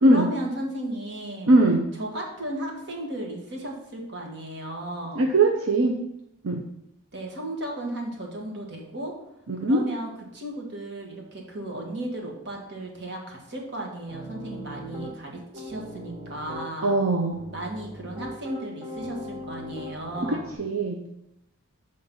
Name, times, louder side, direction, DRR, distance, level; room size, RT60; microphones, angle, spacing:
voice 1, 0.0-1.5 2.0-5.3 7.1-9.1 9.6-17.0 17.5-20.5, right 1 dB, 55° right, 0 dB, 1.5 m, -35 dB
voice 2, 1.5-1.9 5.2-6.0 6.4-6.6 9.5-9.8 16.8-17.4 20.2-21.0, right 2 dB, 75° right, 2 dB, 0.6 m, -21 dB
Piano, 14.1-15.1 15.5-16.7 17.3-20.6, equal, 35° right, 2.1 m, -39 dB
7.1 x 3.8 x 5.3 m, 0.85 s
head